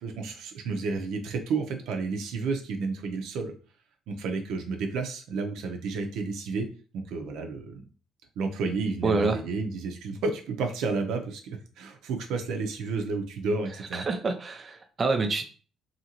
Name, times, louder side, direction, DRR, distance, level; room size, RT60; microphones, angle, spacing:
voice 1, 0.0-3.5 4.1-6.7 6.9-7.8 8.4-14.1, right 4 dB, 80° right, 4 dB, 0.5 m, -31 dB
voice 2, 9.0-9.4 13.9-15.4, right 3 dB, 30° right, 5 dB, 0.3 m, -26 dB
2.8 x 2.5 x 2.8 m, 0.39 s
cardioid pair, 120°, 0 cm